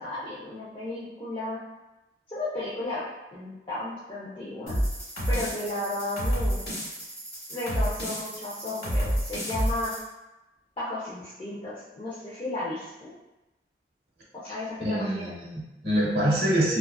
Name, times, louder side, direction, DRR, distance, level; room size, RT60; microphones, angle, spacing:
voice 1, 0.0-1.6 2.3-3.0 3.3-4.7 5.3-6.6 7.5-9.9 10.8-13.1 14.3-15.2, left 2 dB, 30° left, -9 dB, 0.4 m, -34 dB
sound 1, 4.7-10.0, equal, 55° left, 1.3 m, -29 dB
voice 2, 14.8-16.8, right 1 dB, 75° right, -5 dB, 0.9 m, -25 dB
2.3 x 2.3 x 2.2 m, 1.0 s
head